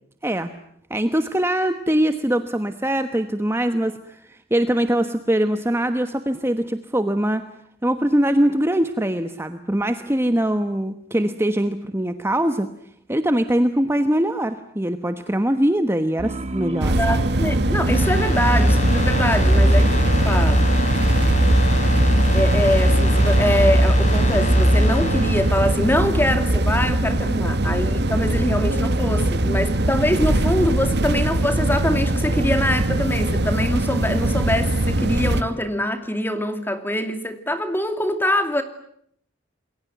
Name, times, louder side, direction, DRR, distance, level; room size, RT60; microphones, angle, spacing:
voice 1, 0.2-0.6 0.9-7.4 7.8-12.7 13.1-17.2, right 1 dB, 15° right, 8 dB, 1.2 m, -22 dB
sound 1, 16.2-25.8, right 1 dB, 35° right, 1.8 m, -31 dB
sound 2, 16.8-35.4, right 1 dB, 60° right, 1.3 m, -21 dB
voice 2, 16.9-20.7 22.3-38.6, left 1 dB, 10° left, 8 dB, 2.5 m, -24 dB
sound 3, 17.9-26.6 26.9-27.0, equal, 40° left, 5.5 m, -20 dB
28.0 x 22.0 x 9.3 m, 0.69 s
head